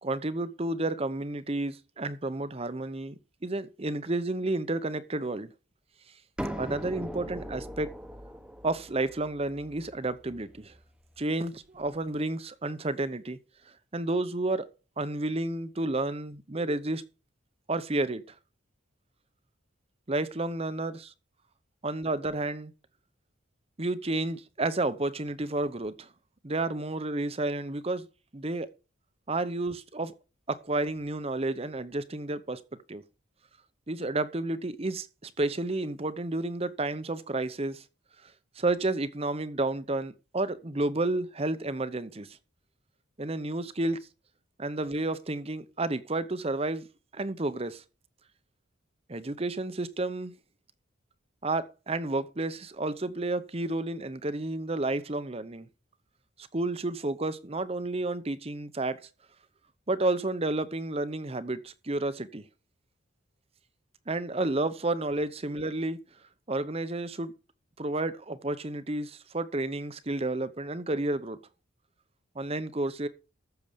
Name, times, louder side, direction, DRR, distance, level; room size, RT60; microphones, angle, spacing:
voice 1, 0.0-3.1 3.4-5.5 6.6-7.9 8.6-10.7 11.2-13.4 13.9-14.6 15.0-17.0 17.7-18.2 20.1-21.1 21.8-22.7 23.8-26.1 26.4-28.0 28.3-28.7 29.3-30.1 30.5-32.6 32.9-33.0 33.9-37.8 38.2-38.3 38.6-42.3 43.2-44.0 44.6-46.9 47.1-47.8 49.1-50.3 51.4-55.7 56.5-59.0 59.9-62.4 64.1-66.0 66.5-67.3 67.8-71.4 72.4-73.1, right 2 dB, 30° right, 0.8 m, -31 dB
sound 1, 6.4-12.0, equal, 5° right, 1.0 m, -41 dB
14.0 x 6.8 x 5.2 m
head